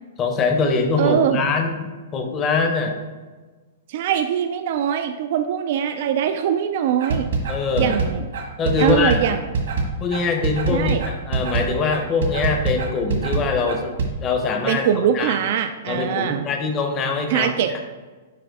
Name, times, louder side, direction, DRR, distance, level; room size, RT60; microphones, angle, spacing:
voice 1, 0.2-3.0 7.5-8.0 8.6-9.2 10.0-13.9 14.2-14.9 15.1-15.4 15.9-17.5, left 4 dB, 20° left, 4 dB, 0.8 m, -23 dB
voice 2, 1.0-1.4 3.9-7.3 7.8-8.3 8.8-9.7 10.7-11.0 14.7-16.5 17.3-17.8, right 9 dB, 50° right, 6 dB, 0.4 m, -22 dB
sound 1, 7.0-14.1, right 4 dB, 75° right, 1.6 m, -24 dB
7.6 x 4.9 x 3.5 m, 1.3 s
hypercardioid pair, 160°, 0 cm